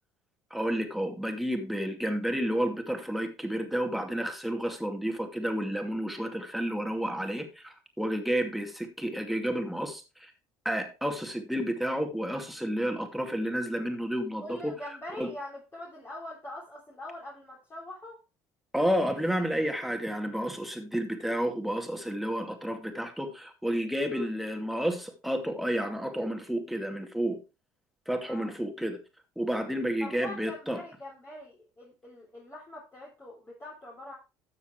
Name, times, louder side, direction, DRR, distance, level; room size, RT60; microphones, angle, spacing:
voice 1, 0.5-10.3 10.6-14.7 15.2-15.3 18.7-27.4 28.1-29.0 29.4-30.8, equal, ahead, 2.4 m, -31 dB
voice 2, 14.4-18.2 24.1-24.3 28.2-28.5 30.0-34.1, left 1 dB, 25° left, 3.3 m, -43 dB
12.5 x 7.2 x 3.2 m
supercardioid pair, 75°, 9 cm